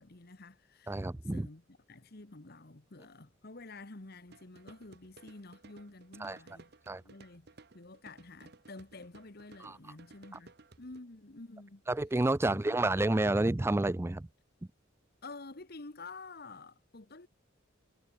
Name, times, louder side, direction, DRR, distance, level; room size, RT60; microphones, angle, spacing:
voice 1, 0.0-1.0 1.3-7.5 7.7-11.8 12.5-13.0 15.2-17.3, left 3 dB, 50° left, 1.4 m, -50 dB
voice 2, 0.9-1.5 6.2-6.4 6.9-7.0 9.6-9.8 11.9-14.3, right 2 dB, 10° right, 0.4 m, -29 dB
sound 1, 4.3-11.0, right 3 dB, 55° right, 1.2 m, -58 dB
head